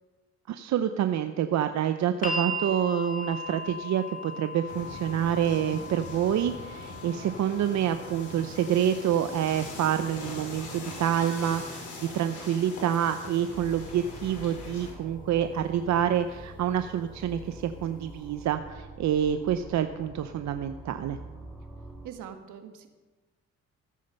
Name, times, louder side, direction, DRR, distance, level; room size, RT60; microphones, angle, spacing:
voice 1, 0.5-21.2, right 9 dB, 65° right, 9 dB, 0.7 m, -27 dB
sound 1, 2.2-14.3 15.4-15.5, left 1 dB, 25° left, 1.7 m, -40 dB
sound 2, 4.7-14.9, left 2 dB, 75° left, 4.8 m, -42 dB
sound 3, 13.5-22.1, right 1 dB, ahead, 2.6 m, -45 dB
voice 2, 22.0-22.9, right 8 dB, 85° right, 6 dB, 1.4 m, -42 dB
14.5 x 8.5 x 5.6 m, 1.2 s
cardioid pair, 90°, 30 cm